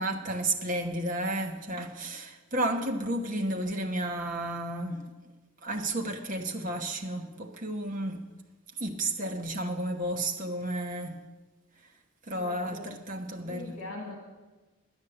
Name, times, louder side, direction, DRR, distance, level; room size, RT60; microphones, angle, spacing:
voice 1, 0.0-5.0 5.6-8.2 8.8-11.2 12.3-13.8, right 1 dB, 35° right, 1.2 m, -32 dB
voice 2, 12.3-12.9 13.3-14.2, left 2 dB, 75° left, 2.4 m, -42 dB
11.0 x 9.5 x 7.9 m
head